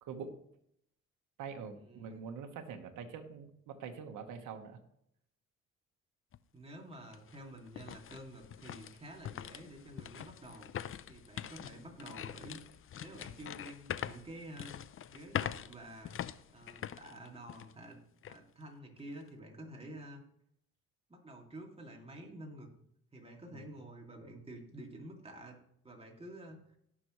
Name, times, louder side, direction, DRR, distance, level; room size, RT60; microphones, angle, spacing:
voice 1, 0.0-0.4 1.4-4.8 23.5-23.6, right 6 dB, 85° right, 5 dB, 1.3 m, -44 dB
voice 2, 1.8-2.3 6.5-10.7 11.1-12.6 12.9-14.8 15.1-16.2 16.5-18.0 18.3-20.2 21.1-22.7 23.1-25.6 25.8-26.8, right 1 dB, 20° right, 0 dB, 2.4 m, -49 dB
sound 1, 6.3-6.4 6.9-17.8 18.2-18.4 19.0-19.3, left 10 dB, 45° left, 0.5 m, -43 dB
17.5 x 6.1 x 3.1 m, 0.73 s
cardioid pair, 90°, 30 cm